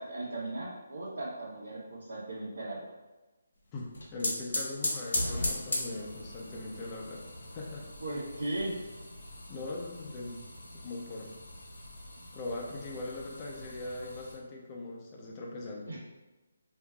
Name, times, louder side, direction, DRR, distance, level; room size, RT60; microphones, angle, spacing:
voice 1, 0.0-2.9 8.0-8.7 15.9-16.0, right 2 dB, 80° right, -8 dB, 1.1 m, -37 dB
sound 1, 3.7-14.3, left 1 dB, 85° left, 1.0 m, -38 dB
voice 2, 3.7-7.3 7.5-7.9 9.5-10.5 10.8-11.3 12.3-15.9, left 2 dB, 20° left, -2 dB, 0.6 m, -40 dB
5.2 x 2.7 x 2.4 m, 1.1 s
hypercardioid pair, 165°, 0 cm